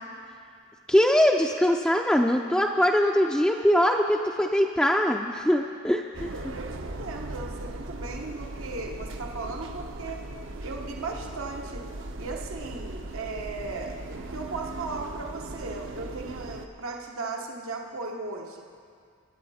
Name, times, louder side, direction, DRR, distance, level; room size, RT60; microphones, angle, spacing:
voice 1, 0.9-6.5, equal, 5° left, 1 dB, 0.4 m, -22 dB
sound 1, 6.1-16.7, right 1 dB, 65° right, 0.8 m, -38 dB
voice 2, 6.5-10.2 10.6-11.8 12.2-18.6, right 3 dB, 80° right, 1 dB, 1.1 m, -37 dB
24.0 x 9.9 x 4.2 m, 2.2 s
head